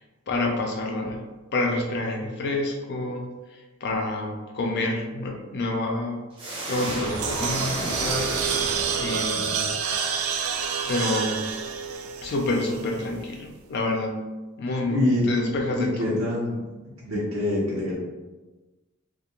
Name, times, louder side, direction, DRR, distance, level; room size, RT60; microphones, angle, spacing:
voice 1, 0.3-1.2 1.5-9.7 10.8-11.4 12.2-14.2 14.6-16.2, left 2 dB, 55° left, 1 dB, 0.4 m, -28 dB
sound 1, 6.4-9.7, right 1 dB, 25° right, 0.6 m, -32 dB
sound 2, 6.8-13.1, right 6 dB, 85° right, 0.3 m, -29 dB
voice 2, 14.9-15.2 15.8-16.7 17.0-17.9, left 1 dB, 70° right, -7 dB, 0.7 m, -25 dB
2.4 x 2.1 x 2.9 m, 1.2 s
head